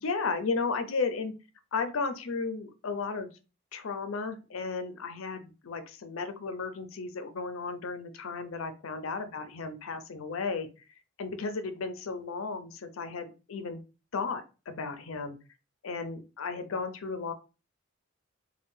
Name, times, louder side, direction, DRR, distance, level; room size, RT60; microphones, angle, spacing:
voice 1, 0.0-1.3 1.7-3.3 3.7-10.7 11.2-13.8 14.1-15.4 15.8-17.3, left 4 dB, 80° left, 9 dB, 0.5 m, -34 dB
3.6 x 2.2 x 2.6 m, 0.31 s
head